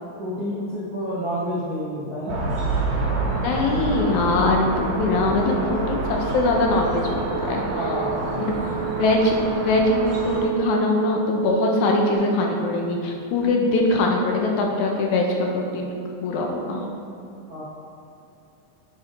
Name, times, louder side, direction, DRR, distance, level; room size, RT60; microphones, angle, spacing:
voice 1, 0.2-2.5 7.6-8.8 17.5-17.6, equal, 85° right, -9 dB, 0.8 m, -30 dB
sound 1, 2.3-10.4, right 3 dB, 65° right, 2.0 m, -28 dB
sound 2, 3.1-12.2, right 8 dB, 60° left, 1.8 m, -30 dB
voice 2, 3.4-7.6 8.4-8.5 9.0-15.9 16.2-16.8, left 2 dB, 80° left, 1 dB, 2.0 m, -22 dB
7.6 x 3.7 x 4.4 m, 2.6 s
omnidirectional pair, 3.6 m